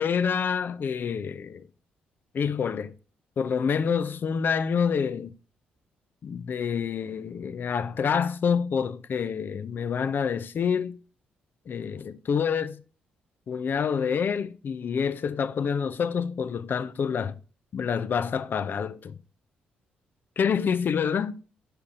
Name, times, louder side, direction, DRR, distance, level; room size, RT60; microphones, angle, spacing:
voice 1, 0.0-1.6 2.3-2.9 3.4-5.3 6.2-11.0 11.7-12.8 13.5-17.3 17.7-19.1 20.4-21.4, left 6 dB, 55° left, 0.5 m, -27 dB
5.7 x 5.2 x 3.5 m
hypercardioid pair, 50°, 4 cm